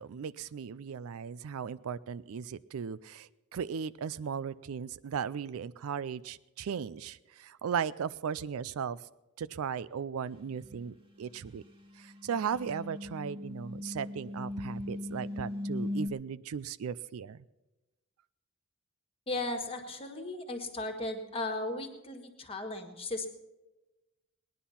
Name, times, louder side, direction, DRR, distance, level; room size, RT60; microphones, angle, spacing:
voice 1, 0.0-9.0 9.4-11.6 12.0-17.4, right 7 dB, 65° right, 17 dB, 0.4 m, -37 dB
sound 1, 10.7-10.9 11.8-16.1, left 1 dB, 25° right, 1.5 m, -38 dB
voice 2, 19.3-23.3, left 2 dB, 25° left, 5 dB, 1.6 m, -36 dB
19.0 x 10.5 x 5.7 m, 1.1 s
head